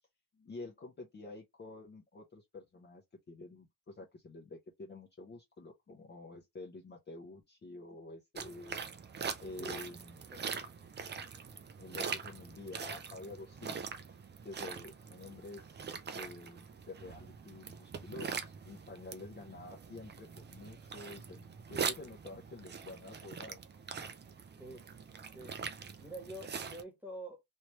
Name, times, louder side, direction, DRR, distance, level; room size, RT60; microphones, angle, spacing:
voice 1, 0.3-3.0 3.3-8.8 9.4-10.2 11.8-15.9 16.1-23.6, left 2 dB, 30° left, 0.7 m, -49 dB
sound 1, 8.4-26.8, right 6 dB, 30° right, 0.4 m, -43 dB
voice 2, 26.0-27.4, right 1 dB, 5° right, 1.2 m, -46 dB
3.2 x 3.0 x 3.0 m
wide cardioid pair, 175°, 36 cm